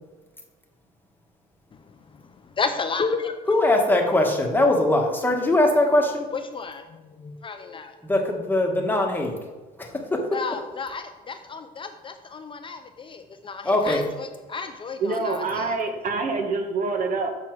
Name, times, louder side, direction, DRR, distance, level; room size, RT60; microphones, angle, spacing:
voice 1, 2.1-3.4 6.5-8.0 10.3-15.7, left 5 dB, 30° left, 7 dB, 0.5 m, -32 dB
voice 2, 3.5-6.3 8.0-9.4 9.8-9.9 13.6-14.0, left 1 dB, 10° left, 1 dB, 1.4 m, -21 dB
voice 3, 15.0-17.3, right 3 dB, 50° right, 4 dB, 1.3 m, -26 dB
7.0 x 6.0 x 4.7 m, 1.3 s
cardioid pair, 110°, 17 cm